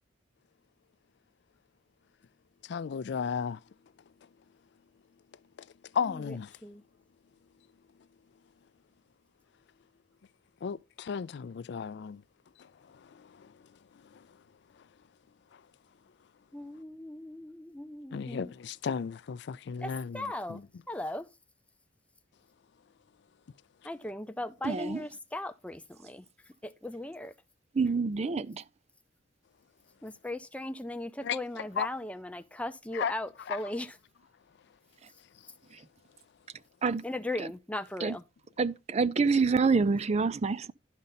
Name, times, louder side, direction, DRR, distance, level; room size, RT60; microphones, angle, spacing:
voice 1, 2.6-3.6 5.9-6.6 10.6-12.2 12.6-13.5 14.0-14.3 15.5-15.6 18.1-20.7 31.2-31.9 32.9-33.7, left 6 dB, 65° left, 0.4 m, -35 dB
voice 2, 16.5-18.5 19.8-20.6 20.9-21.3 23.8-26.2 26.6-27.3 30.0-33.9 37.0-38.2, left 1 dB, 5° left, 0.6 m, -38 dB
voice 3, 24.6-25.0 27.7-28.6 36.8-37.0 37.4-37.5 38.0-38.2 38.6-40.7, right 4 dB, 35° right, 0.4 m, -27 dB
11.5 x 5.3 x 4.1 m
head